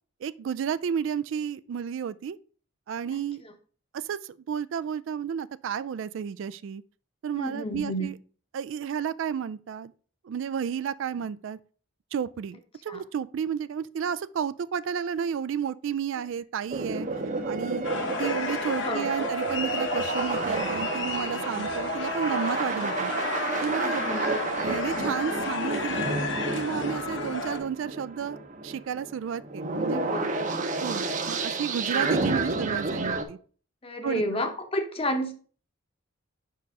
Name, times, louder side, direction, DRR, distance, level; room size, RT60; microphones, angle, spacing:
voice 1, 0.2-2.4 2.9-3.4 3.9-6.8 7.2-8.1 8.5-9.9 10.2-11.6 12.1-17.1 17.5-17.9 18.2-23.1 23.6-24.0 24.6-26.1 26.5-28.4 28.6-30.0 30.8-33.4 34.0-34.2, right 7 dB, 65° right, 0.3 m, -32 dB
voice 2, 7.3-8.1 12.9-13.0 17.9-18.5 18.8-19.3 21.0-21.6 23.8-24.2 29.9-30.5 33.8-35.4, equal, 25° left, 0.9 m, -32 dB
sound 1, 16.7-33.2, right 3 dB, 35° right, 0.7 m, -31 dB
sound 2, 17.8-27.6, left 3 dB, 55° left, 1.1 m, -32 dB
5.3 x 4.6 x 4.7 m
head